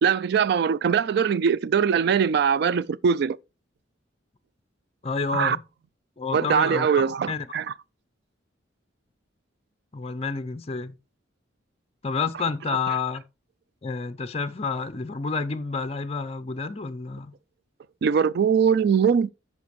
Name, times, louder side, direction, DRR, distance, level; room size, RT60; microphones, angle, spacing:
voice 1, 0.0-3.4 5.3-5.6 6.3-7.7 18.0-19.3, right 7 dB, 55° right, 0.3 m, -21 dB
voice 2, 5.0-5.6 6.2-7.5 9.9-10.9 12.0-13.2 13.8-17.3, left 4 dB, 30° left, 0.5 m, -29 dB
13.5 x 5.2 x 3.1 m
head